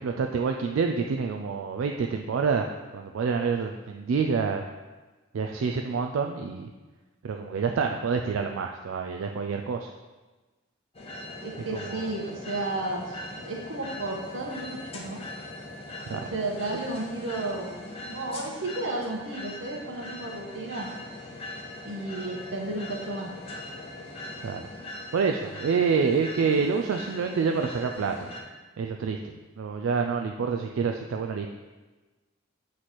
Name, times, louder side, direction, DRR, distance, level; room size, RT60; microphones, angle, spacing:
voice 1, 0.0-2.7 2.9-4.6 5.3-6.7 7.2-9.9 11.7-12.1 16.1-16.3 24.4-24.6 25.1-28.3 28.8-31.5, right 5 dB, 85° right, 3 dB, 0.4 m, -27 dB
sound 1, 10.9-28.4, left 1 dB, 30° left, 0.8 m, -41 dB
voice 2, 11.4-15.2 16.1-17.7 18.1-20.9 21.8-23.3, right 2 dB, 70° right, 0 dB, 1.0 m, -33 dB
7.7 x 3.1 x 4.1 m, 1.2 s
head